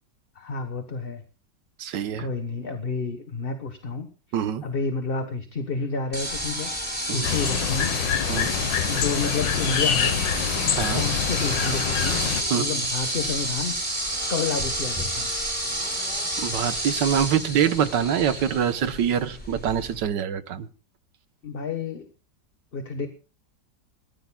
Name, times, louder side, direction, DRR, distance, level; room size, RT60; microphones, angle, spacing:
voice 1, 0.3-1.2 2.2-4.1 4.6-8.0 8.9-10.2 10.9-12.2 12.5-13.7 14.3-15.3 21.4-22.1 22.7-23.1, left 4 dB, 35° left, 7 dB, 1.2 m, -30 dB
voice 2, 1.8-2.3 4.3-4.6 7.1-7.3 8.3-8.5 10.8-11.0 12.5-12.7 16.4-20.7, right 8 dB, 75° right, 12 dB, 1.6 m, -25 dB
sound 1, 6.1-20.0, right 1 dB, 5° left, 3.8 m, -30 dB
sound 2, 7.2-12.4, left 8 dB, 85° left, 1.8 m, -26 dB
26.0 x 14.5 x 2.3 m, 0.33 s
omnidirectional pair, 1.9 m